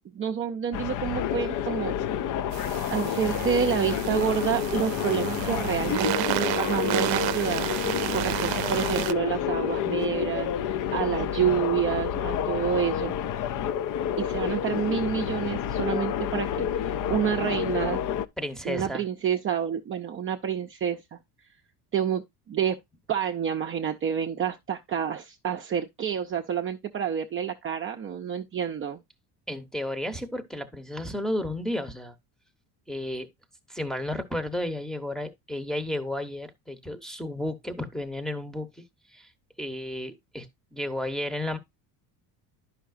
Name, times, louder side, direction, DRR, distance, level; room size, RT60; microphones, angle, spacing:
voice 1, 0.0-1.9 2.9-13.1 14.2-18.1 18.6-21.2 21.9-22.8 23.1-29.0, right 8 dB, 30° right, 0.5 m, -29 dB
sound 1, 0.7-18.3, left 9 dB, 50° left, 0.5 m, -29 dB
sound 2, 2.5-9.1, right 16 dB, 75° right, 0.6 m, -31 dB
voice 2, 18.4-19.0 29.5-32.1 32.9-33.3 33.7-38.8 39.1-39.3 39.6-41.6, left 1 dB, ahead, 0.8 m, -32 dB
10.0 x 5.7 x 2.5 m
cardioid pair, 115°, 41 cm